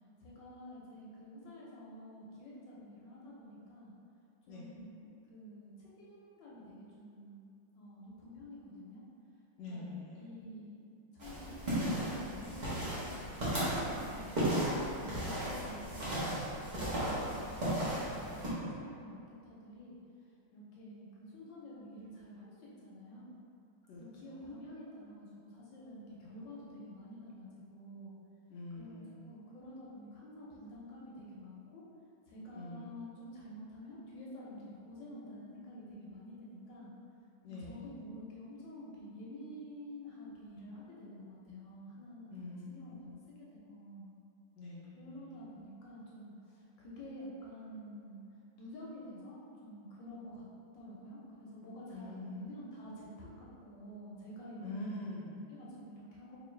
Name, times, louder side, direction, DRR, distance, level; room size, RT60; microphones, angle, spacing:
voice 1, 0.2-3.9 4.5-7.5 7.7-9.0 9.7-10.8 11.1-16.3 16.6-20.0 20.5-23.3 24.0-28.1 28.7-28.9 29.2-31.8 32.3-36.9 37.5-44.1 44.9-48.2 48.6-50.5 50.7-54.9 55.5-56.4, equal, 70° left, -6 dB, 1.2 m, -49 dB
voice 2, 9.6-10.3 23.9-24.0 24.4-24.6 28.5-29.2 32.5-33.0 37.4-37.8 42.3-43.2 44.6-45.3 51.9-52.4 54.6-55.5, left 2 dB, 85° left, -5 dB, 0.9 m, -45 dB
sound 1, 11.2-18.5, right 1 dB, 40° right, 0.6 m, -35 dB
3.7 x 2.8 x 3.2 m, 2.6 s
omnidirectional pair, 2.3 m